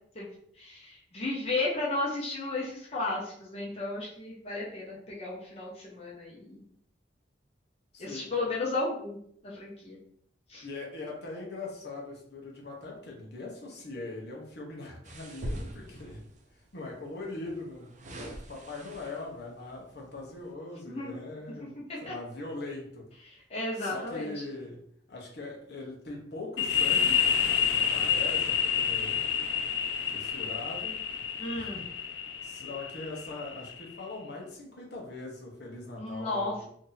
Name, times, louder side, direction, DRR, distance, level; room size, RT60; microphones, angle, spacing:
voice 1, 0.6-6.6 8.0-9.2 9.4-10.0 10.5-10.6 20.9-21.2 22.1-22.2 23.2-24.3 31.4-31.8 36.0-36.5, left 2 dB, 35° left, -5 dB, 0.8 m, -34 dB
voice 2, 7.9-8.3 10.6-16.2 16.5-21.7 22.0-23.0 23.8-24.8 25.1-27.2 27.5-29.2 30.1-31.0 31.4-31.8 32.4-36.6, left 2 dB, 65° left, -2 dB, 0.9 m, -41 dB
sound 1, 15.0-16.4 17.4-19.4 20.0-20.2, right 1 dB, 45° right, 0.5 m, -41 dB
sound 2, 26.6-34.0, left 7 dB, 85° left, 0.4 m, -29 dB
2.7 x 2.7 x 3.9 m, 0.67 s
head